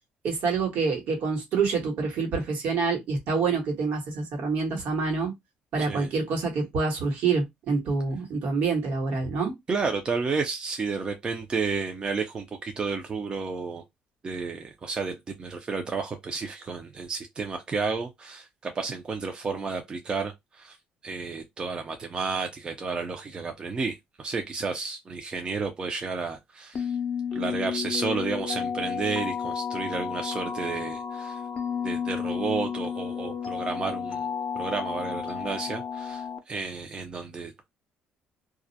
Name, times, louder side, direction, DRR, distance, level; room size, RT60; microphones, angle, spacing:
voice 1, 0.2-5.3 5.7-9.5, right 4 dB, 70° right, 1.2 m, -27 dB
voice 2, 5.8-6.1 9.7-13.8 14.2-20.8 21.0-26.9 27.3-31.4 31.8-34.3 34.5-37.7, right 4 dB, 30° right, 0.5 m, -31 dB
sound 1, 26.7-36.4, left 7 dB, 45° left, 0.5 m, -32 dB
2.3 x 2.0 x 2.7 m
cardioid pair, 95°, 3 cm